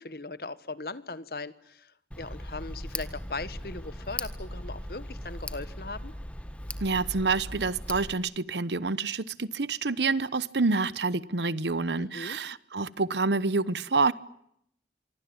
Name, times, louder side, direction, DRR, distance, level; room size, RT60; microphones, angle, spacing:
voice 1, 0.0-6.1 12.0-12.4, left 3 dB, 60° left, 1.4 m, -39 dB
Tick, 2.1-8.1, left 1 dB, 5° left, 1.6 m, -38 dB
voice 2, 6.8-14.1, right 3 dB, 80° right, 1.0 m, -27 dB
25.5 x 24.5 x 8.9 m
head